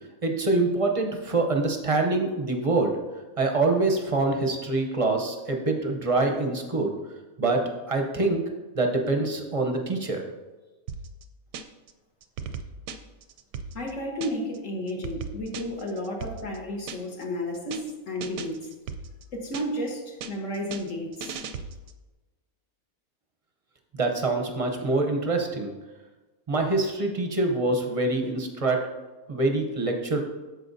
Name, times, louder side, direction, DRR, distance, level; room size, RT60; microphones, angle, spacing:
voice 1, 0.2-2.9 3.4-6.9 7.4-8.4 8.7-10.2 23.9-25.7 26.5-28.9 29.3-30.2, right 2 dB, 35° right, 3 dB, 0.6 m, -25 dB
sound 1, 10.9-11.9 12.2-14.6 14.9-17.2 17.5-17.9 18.2-19.9 20.2-22.0, right 6 dB, 90° right, 1.1 m, -38 dB
voice 2, 13.7-18.7 19.3-21.4, left 1 dB, 60° left, -1 dB, 1.5 m, -32 dB
13.0 x 4.6 x 2.6 m, 1.2 s
omnidirectional pair, 1.5 m